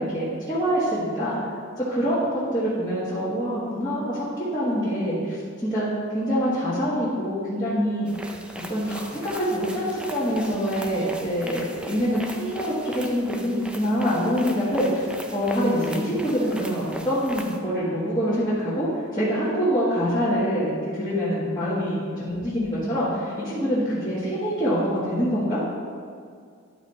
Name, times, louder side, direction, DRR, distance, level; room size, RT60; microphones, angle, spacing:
voice 1, 0.0-1.3 1.8-5.9 6.1-8.1 8.7-15.1 15.3-25.7, equal, 20° left, -12 dB, 1.5 m, -25 dB
sound 1, 8.1-17.6, right 1 dB, 5° right, 0.4 m, -39 dB
11.0 x 4.1 x 4.3 m, 2.2 s
head